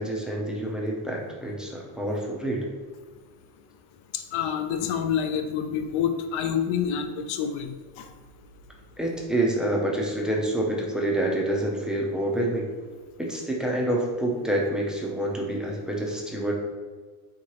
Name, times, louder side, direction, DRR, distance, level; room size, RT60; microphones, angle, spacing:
voice 1, 0.0-2.7 9.0-12.7 13.2-16.5, right 1 dB, ahead, -2 dB, 0.4 m, -27 dB
voice 2, 4.1-8.1, left 8 dB, 70° left, 7 dB, 0.6 m, -28 dB
4.7 x 3.6 x 2.9 m, 1.5 s
cardioid pair, 165°, 50 cm